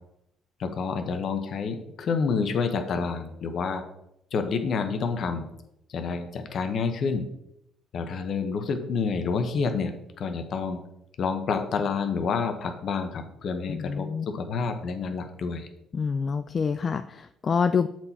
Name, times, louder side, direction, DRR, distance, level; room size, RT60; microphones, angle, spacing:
voice 1, 0.6-3.8 4.3-5.5 5.9-7.3 7.9-10.8 11.2-15.7, left 5 dB, 55° left, 7 dB, 1.0 m, -28 dB
voice 2, 13.7-14.3 15.9-17.9, left 6 dB, 40° left, 10 dB, 0.3 m, -27 dB
7.5 x 4.5 x 4.2 m, 0.80 s
cardioid pair, 100°, 0 cm